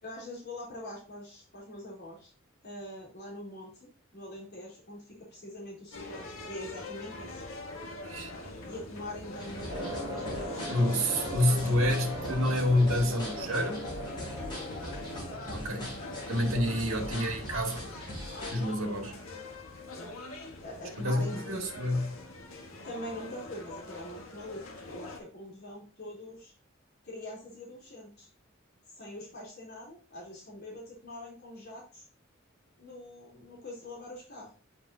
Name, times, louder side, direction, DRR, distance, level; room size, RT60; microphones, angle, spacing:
voice 1, 0.0-2.3 2.6-7.4 8.6-12.1 14.1-14.4 19.9-20.1 20.6-21.7 22.8-26.5 27.0-28.3 29.0-32.0 32.8-34.5, left 1 dB, 50° left, 3.2 m, -44 dB
sound 1, 5.9-25.2, left 2 dB, 85° left, 1.5 m, -43 dB
sound 2, 9.4-18.8, left 1 dB, 20° left, 3.7 m, -42 dB
sound 3, 9.7-17.2, equal, 25° right, 2.1 m, -41 dB
voice 2, 10.7-13.8 15.5-16.0 16.3-17.9 18.5-19.2 21.0-22.1, left 1 dB, 75° right, 1.6 m, -28 dB
7.7 x 5.3 x 2.7 m
head